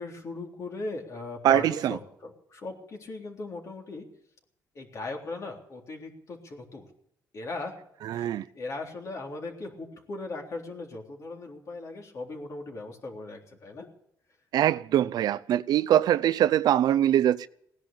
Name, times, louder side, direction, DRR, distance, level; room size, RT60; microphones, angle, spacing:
voice 1, 0.0-4.0 4.8-6.8 7.3-7.7 8.1-8.3 8.6-13.9, left 3 dB, 50° left, 3.6 m, -38 dB
voice 2, 1.4-2.0 8.0-8.4 14.5-17.5, right 11 dB, 75° right, 0.5 m, -23 dB
18.0 x 10.5 x 7.5 m
cardioid pair, 125°, 7 cm